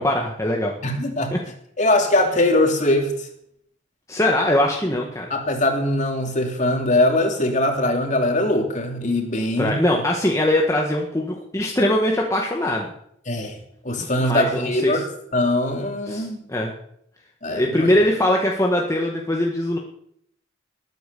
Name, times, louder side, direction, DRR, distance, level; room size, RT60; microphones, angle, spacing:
voice 1, 0.0-0.7 1.3-1.4 4.1-5.3 9.6-12.9 14.0-15.0 16.1-16.7 17.5-19.8, left 1 dB, 15° left, 0 dB, 1.6 m, -21 dB
voice 2, 0.8-1.3 1.8-3.3 5.3-9.8 13.3-13.6 13.8-15.0 15.3-16.4 17.4-17.9, left 1 dB, 40° left, 3 dB, 3.1 m, -21 dB
20.5 x 9.2 x 6.9 m, 0.70 s
head